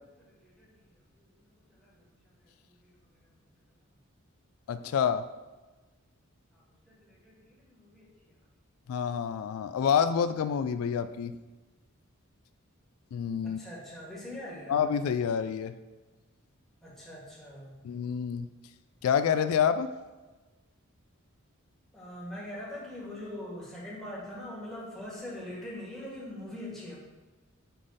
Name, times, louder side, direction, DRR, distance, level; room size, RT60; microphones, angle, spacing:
voice 1, 0.3-2.9 3.2-3.3 6.5-8.4 13.4-14.8 16.8-17.8 21.9-27.0, left 1 dB, ahead, -7 dB, 1.8 m, -43 dB
voice 2, 4.7-5.2 8.9-11.3 13.1-13.6 14.7-15.7 17.8-18.5 19.0-19.9, left 7 dB, 85° left, 12 dB, 0.3 m, -27 dB
5.6 x 3.9 x 4.9 m, 1.2 s
head